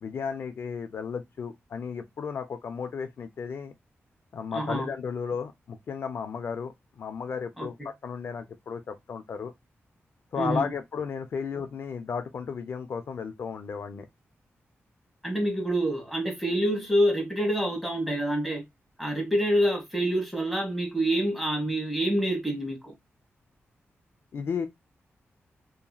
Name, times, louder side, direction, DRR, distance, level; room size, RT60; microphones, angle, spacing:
voice 1, 0.0-3.8 4.3-9.5 10.3-14.1 24.3-24.7, left 6 dB, 60° left, 0.4 m, -34 dB
voice 2, 4.5-4.9 7.6-7.7 10.4-10.7 15.2-18.6 19.0-22.9, equal, ahead, 1.0 m, -27 dB
2.9 x 2.6 x 2.2 m
wide cardioid pair, 140°, 5 cm